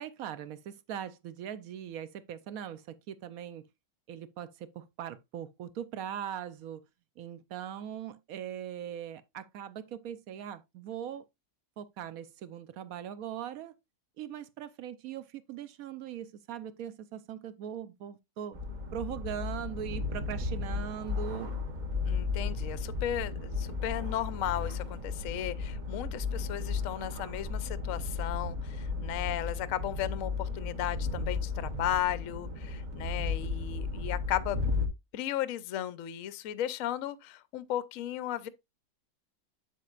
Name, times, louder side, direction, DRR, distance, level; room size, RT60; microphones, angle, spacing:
voice 1, 0.0-3.7 4.1-6.8 7.2-11.3 11.8-13.7 14.2-18.6 18.9-21.5, right 9 dB, 65° right, 0.9 m, -40 dB
sound 1, 18.5-34.9, left 4 dB, 35° right, 0.8 m, -34 dB
voice 2, 22.0-34.6 35.1-38.5, left 12 dB, 65° left, 0.8 m, -35 dB
7.8 x 7.5 x 2.4 m
omnidirectional pair, 1.9 m